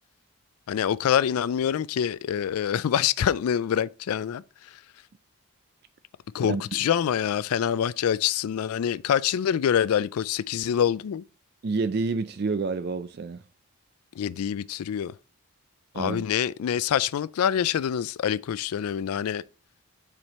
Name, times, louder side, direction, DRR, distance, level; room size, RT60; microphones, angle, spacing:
voice 1, 0.7-4.4 4.7-4.8 6.3-11.2 14.2-15.1 16.0-19.4, left 9 dB, 90° left, 0.3 m, -25 dB
voice 2, 6.4-6.8 11.6-13.4 15.9-16.3, right 4 dB, 45° right, 0.4 m, -29 dB
7.5 x 4.9 x 4.1 m
head